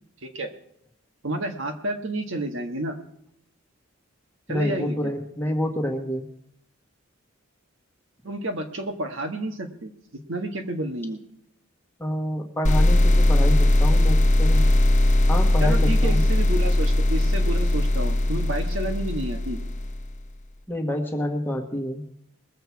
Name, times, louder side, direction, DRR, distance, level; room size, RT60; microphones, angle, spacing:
voice 1, 0.2-0.5 1.2-3.0 4.5-5.1 8.2-9.9 10.3-11.2 15.6-19.6, right 1 dB, 65° right, 5 dB, 1.5 m, -30 dB
voice 2, 4.5-6.3 12.0-14.6 15.3-16.3 20.7-22.0, equal, 10° left, 3 dB, 1.5 m, -28 dB
sound 1, 12.6-20.2, left 1 dB, 35° left, 1.0 m, -19 dB
21.0 x 7.9 x 4.7 m, 0.74 s
head